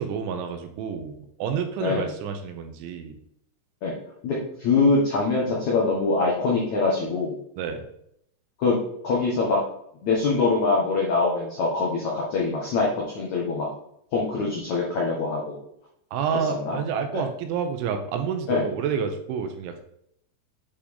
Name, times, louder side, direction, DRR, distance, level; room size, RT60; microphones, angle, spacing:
voice 1, 0.0-3.2 7.6-7.8 16.1-19.8, right 7 dB, 85° right, 6 dB, 3.1 m, -29 dB
voice 2, 4.2-7.3 8.6-8.8 9.0-9.6 10.0-13.7 14.1-15.6 16.3-16.8 17.1-17.2 18.5-18.6, left 3 dB, 80° left, -3 dB, 1.6 m, -24 dB
8.5 x 5.1 x 3.6 m, 0.73 s
omnidirectional pair, 5.6 m